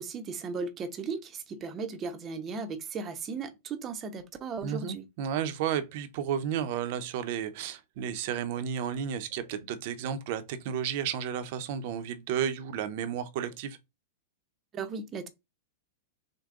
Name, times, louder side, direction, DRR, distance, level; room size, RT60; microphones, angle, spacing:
voice 1, 0.0-5.0 14.7-15.3, right 4 dB, 25° right, 0.8 m, -36 dB
voice 2, 4.6-13.8, right 8 dB, 55° right, 0.8 m, -32 dB
6.4 x 2.2 x 3.7 m
hypercardioid pair, 135°, 0 cm